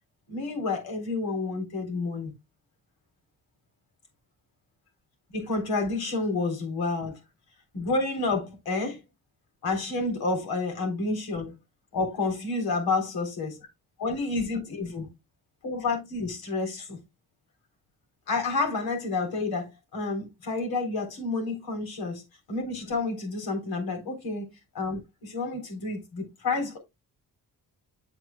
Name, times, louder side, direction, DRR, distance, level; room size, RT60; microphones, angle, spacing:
voice 1, 0.3-2.3 5.3-7.1 7.7-9.0 9.6-11.5 11.9-13.6 14.0-15.1 15.6-17.0 18.3-22.2 22.5-24.5 24.7-26.8, left 3 dB, 90° left, 3.9 m, -29 dB
8.3 x 7.8 x 2.3 m
wide cardioid pair, 175°, 36 cm